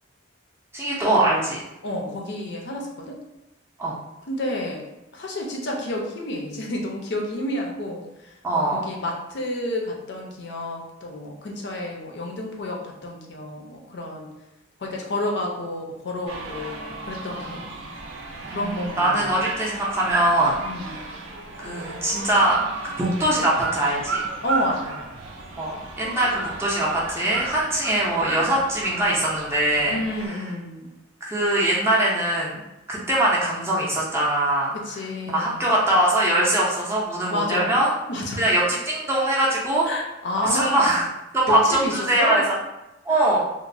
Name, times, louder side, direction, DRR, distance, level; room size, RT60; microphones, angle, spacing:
voice 1, 0.7-1.6 3.8-4.0 8.4-8.9 17.3-17.8 18.5-20.5 20.8-21.0 21.6-22.6 23.0-24.2 25.6-30.0 31.2-32.6 32.9-34.7 35.3-37.9 38.4-39.9 40.4-41.0 41.3-42.4 43.1-43.4, right 1 dB, 15° right, -5 dB, 0.4 m, -22 dB
voice 2, 1.8-3.2 4.3-4.8 5.1-14.3 14.8-17.6 18.5-19.3 20.6-21.0 24.4-25.1 29.9-30.9 34.7-35.7 37.3-37.7 38.1-38.4 39.9-41.0 41.5-42.4 43.1-43.3, left 1 dB, 55° left, 0 dB, 0.5 m, -30 dB
sound 1, 16.3-30.3, right 3 dB, 75° right, 0.4 m, -34 dB
2.9 x 2.0 x 2.5 m, 0.98 s
head